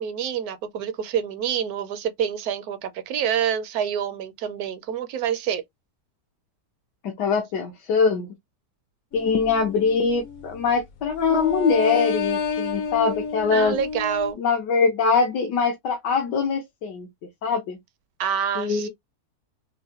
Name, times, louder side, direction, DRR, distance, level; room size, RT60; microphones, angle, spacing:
voice 1, 0.0-5.6 13.5-14.4 18.2-18.9, right 8 dB, 70° right, 1.0 m, -27 dB
voice 2, 7.0-8.3 9.1-13.8 14.4-17.1 17.4-17.8 18.6-18.9, left 5 dB, 80° left, 1.5 m, -23 dB
sound 1, 9.1-10.8 11.2-14.3, left 5 dB, 65° left, 1.0 m, -30 dB
3.9 x 2.1 x 2.6 m
omnidirectional pair, 1.8 m